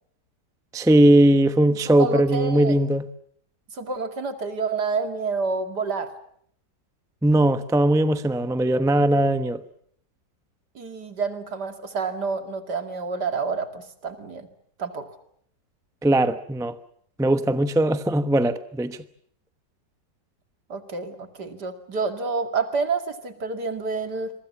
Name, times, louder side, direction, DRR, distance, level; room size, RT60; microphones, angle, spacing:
voice 1, 0.7-3.0 7.2-9.6 16.0-16.7 17.2-19.0, right 1 dB, 5° right, 0.7 m, -19 dB
voice 2, 1.8-2.7 3.7-6.1 10.7-14.5 14.8-15.1 20.7-24.3, right 4 dB, 65° right, 2.9 m, -28 dB
27.0 x 23.0 x 7.2 m
omnidirectional pair, 1.9 m